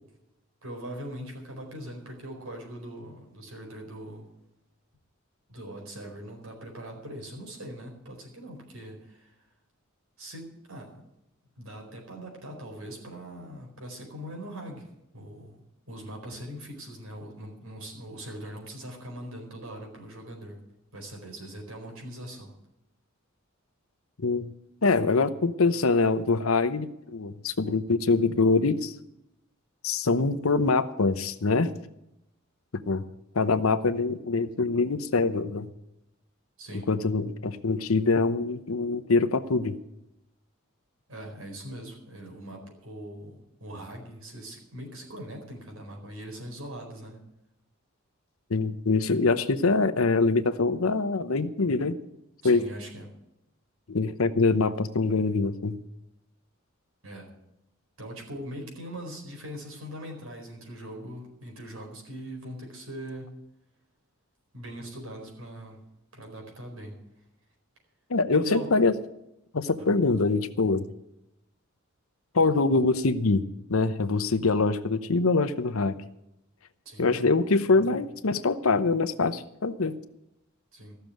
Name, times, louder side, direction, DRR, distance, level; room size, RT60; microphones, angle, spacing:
voice 1, 0.6-4.3 5.5-9.3 10.2-11.0 11.6-14.9 15.1-20.6 20.9-22.5 36.6-36.9 41.1-47.2 52.4-53.1 57.0-57.3 58.0-63.3 64.5-65.8 66.1-67.0 68.3-68.7 69.8-69.9 76.8-77.0 80.7-81.0, right 1 dB, 90° right, 1 dB, 4.6 m, -41 dB
voice 2, 24.2-24.5 24.8-28.9 29.8-31.7 32.7-33.0 33.3-35.7 36.9-39.8 48.5-52.0 52.4-52.6 53.9-55.8 68.1-68.9 69.5-70.8 72.3-73.4 73.7-76.0 77.0-79.9, left 3 dB, 85° left, 12 dB, 0.8 m, -24 dB
14.5 x 6.8 x 9.1 m, 0.86 s
head